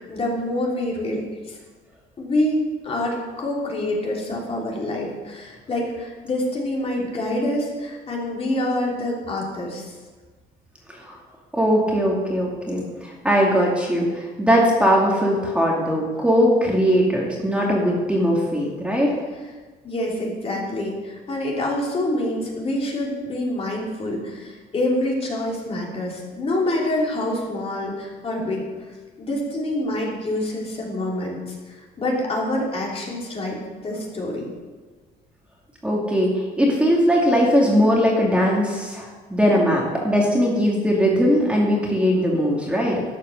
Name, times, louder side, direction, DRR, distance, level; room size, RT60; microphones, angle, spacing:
voice 1, 0.1-1.6 2.2-9.8 19.4-19.5 19.8-28.6 29.2-34.5, left 1 dB, 35° left, -2 dB, 3.1 m, -26 dB
voice 2, 11.5-19.2 35.8-43.0, equal, 5° right, -3 dB, 2.4 m, -20 dB
12.5 x 6.8 x 6.4 m, 1.3 s
cardioid pair, 110°, 17 cm